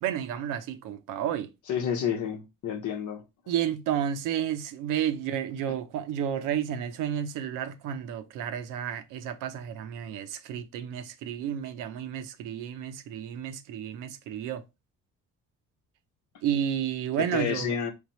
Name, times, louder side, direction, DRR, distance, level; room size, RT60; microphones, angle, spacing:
voice 1, 0.0-1.5 3.5-14.6 16.4-17.7, right 9 dB, 85° right, 0.6 m, -31 dB
voice 2, 1.7-3.2 17.2-17.9, left 7 dB, 70° left, 0.9 m, -30 dB
3.5 x 3.4 x 3.0 m
supercardioid pair, 80°, 31 cm